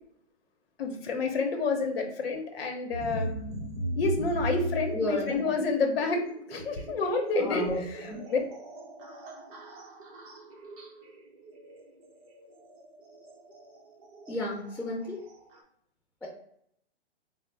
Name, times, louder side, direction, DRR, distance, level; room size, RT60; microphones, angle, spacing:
voice 1, 0.8-3.3 4.0-8.4, left 3 dB, 60° left, 4 dB, 0.9 m, -29 dB
sound 1, 2.9-15.6, right 1 dB, 35° right, 0.7 m, -39 dB
voice 2, 4.9-5.5 7.3-8.2 14.3-15.2 16.2-16.3, left 1 dB, 5° left, -15 dB, 0.6 m, -33 dB
3.6 x 2.0 x 3.3 m, 0.69 s
hypercardioid pair, 155°, 33 cm